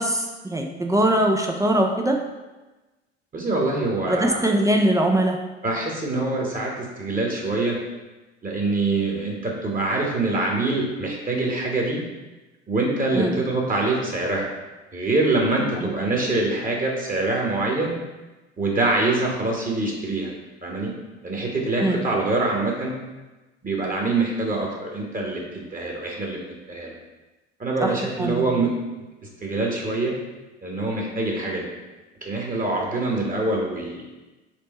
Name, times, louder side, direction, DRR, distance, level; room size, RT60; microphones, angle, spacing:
voice 1, 0.0-2.2 4.1-5.4 13.2-13.3 21.8-22.0 27.8-27.9 28.2-28.5, right 1 dB, 10° right, 2 dB, 0.4 m, -21 dB
voice 2, 3.3-4.5 5.6-7.8 8.4-12.0 12.7-14.4 14.9-18.0 18.6-20.3 20.6-20.9 21.2-22.9 23.6-26.9 27.6-28.7 29.4-30.1 30.6-31.7 32.2-34.1, right 2 dB, 25° right, -1 dB, 1.2 m, -24 dB
4.5 x 2.7 x 4.1 m, 1.1 s
hypercardioid pair, 65°, 32 cm